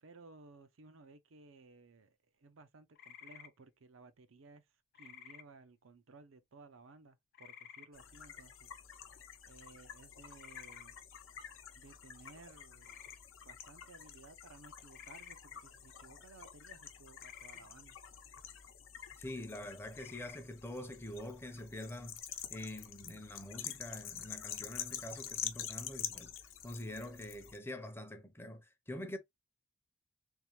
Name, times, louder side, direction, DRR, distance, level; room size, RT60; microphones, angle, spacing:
voice 1, 0.0-4.7 4.9-8.7 9.1-9.2 9.5-11.0 11.7-13.0 13.4-18.0, right 3 dB, 75° right, 0.6 m, -58 dB
sound 1, 2.9-3.5 4.9-5.4 7.3-7.9 10.4-10.9 12.8-13.2 14.9-15.4 17.2-17.6 19.9-20.4, left 9 dB, 50° left, 0.4 m, -52 dB
sound 2, 7.9-27.6, left 9 dB, 75° left, 0.7 m, -47 dB
voice 2, 19.2-22.2 22.5-26.3 26.6-29.2, left 1 dB, 10° left, 0.6 m, -45 dB
3.5 x 3.1 x 3.0 m
head